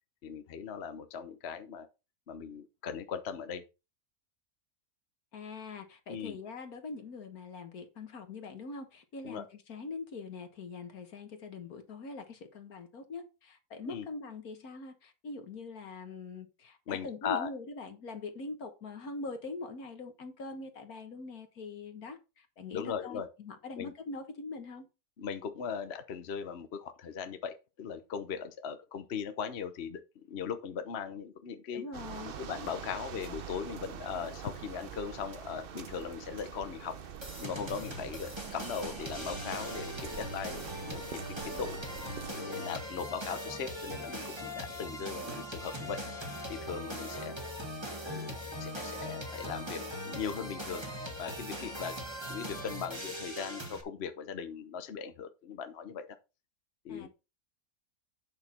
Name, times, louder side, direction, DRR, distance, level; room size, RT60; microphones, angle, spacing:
voice 1, 0.2-1.9 2.3-3.6 6.1-6.4 9.2-9.4 13.8-14.1 16.9-17.5 22.7-23.3 23.8-23.9 25.2-31.9 32.4-37.0 37.4-41.8 42.3-46.0 46.5-47.4 48.0-48.3 48.6-50.9 51.2-51.9 52.3-56.2 56.8-57.1, left 7 dB, 50° left, 1.0 m, -39 dB
voice 2, 5.3-24.9 31.7-32.3 56.9-57.1, left 3 dB, 70° left, 1.9 m, -43 dB
sound 1, 31.9-42.3, right 8 dB, 50° right, 0.7 m, -45 dB
sound 2, 37.2-53.8, equal, 20° right, 1.6 m, -40 dB
8.9 x 6.4 x 4.2 m
omnidirectional pair, 1.6 m